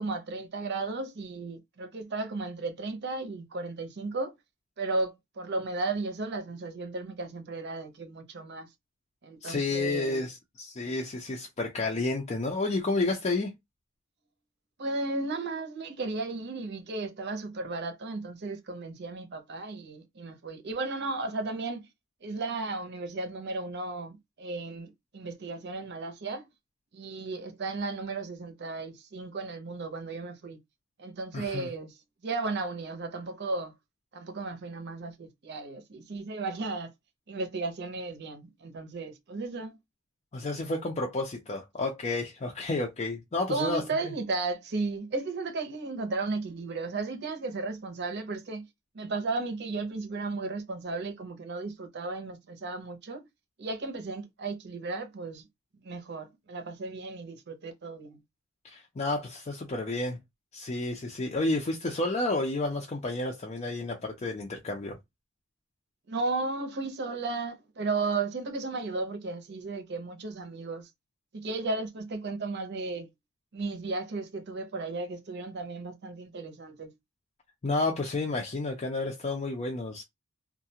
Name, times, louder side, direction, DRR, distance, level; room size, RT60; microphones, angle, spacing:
voice 1, 0.0-4.3 4.8-8.7 9.2-10.2 14.8-21.9 22.2-26.5 26.9-30.6 31.0-32.0 32.2-33.7 34.1-36.9 37.3-39.8 43.5-48.7 48.9-53.3 53.6-55.5 55.8-58.2 66.1-70.9 71.3-73.1 73.5-76.9, right 3 dB, 55° right, 0.7 m, -34 dB
voice 2, 9.4-13.5 31.3-31.7 40.3-43.8 58.6-60.2 60.5-65.0 77.6-80.0, left 2 dB, 35° left, 0.5 m, -31 dB
2.3 x 2.2 x 2.7 m
head